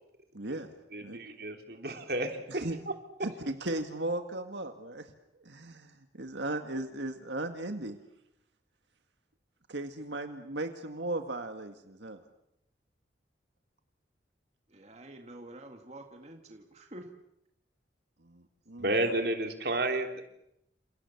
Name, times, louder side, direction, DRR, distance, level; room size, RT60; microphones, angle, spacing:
voice 1, 0.3-0.7 1.0-1.2 2.5-2.8 3.2-5.1 5.4-8.0 9.7-12.2 18.2-18.9, right 2 dB, 75° right, 6 dB, 1.9 m, -37 dB
voice 2, 0.9-2.6 18.8-20.2, right 1 dB, 55° right, 5 dB, 3.3 m, -31 dB
voice 3, 14.7-17.1, right 1 dB, 35° right, 3 dB, 2.0 m, -48 dB
29.5 x 28.0 x 7.1 m, 0.81 s
head